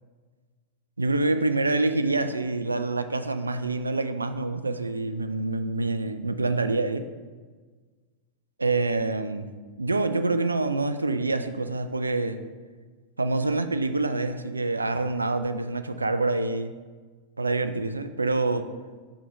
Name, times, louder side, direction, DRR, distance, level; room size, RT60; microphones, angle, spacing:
voice 1, 1.0-7.1 8.6-9.5 9.8-12.4 13.2-16.7 17.4-18.7, right 3 dB, 80° right, 10 dB, 0.3 m, -26 dB
5.5 x 3.8 x 5.3 m, 1.4 s
figure-of-eight pair, 90°, 0 cm